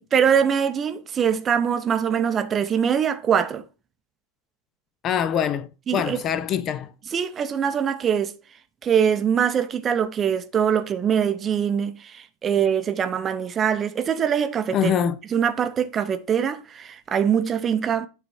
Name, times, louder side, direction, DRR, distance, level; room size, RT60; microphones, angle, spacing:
voice 1, 0.0-3.6 5.9-6.2 7.1-8.3 8.8-14.9 15.3-18.1, right 8 dB, 25° right, 0.7 m, -23 dB
voice 2, 5.0-6.9 14.7-15.2, left 8 dB, 30° left, 0.6 m, -24 dB
9.4 x 4.1 x 5.5 m
figure-of-eight pair, 90°, 0 cm